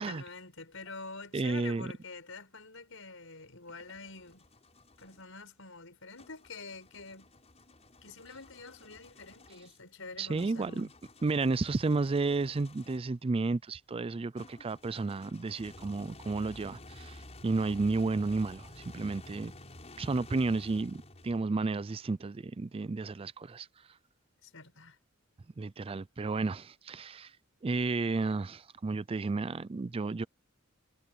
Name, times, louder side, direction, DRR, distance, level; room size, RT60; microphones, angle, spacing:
voice 1, 0.0-4.5 5.0-7.3 8.0-10.9 24.4-25.0, left 3 dB, 70° left, 7.7 m, -47 dB
voice 2, 1.3-1.9 10.2-10.9 11.2-19.5 20.0-23.7 25.6-27.3 27.6-30.2, right 3 dB, 25° right, 0.4 m, -32 dB
sound 1, 3.5-5.3 6.2-13.2 14.4-21.7, left 2 dB, 30° left, 5.9 m, -53 dB
head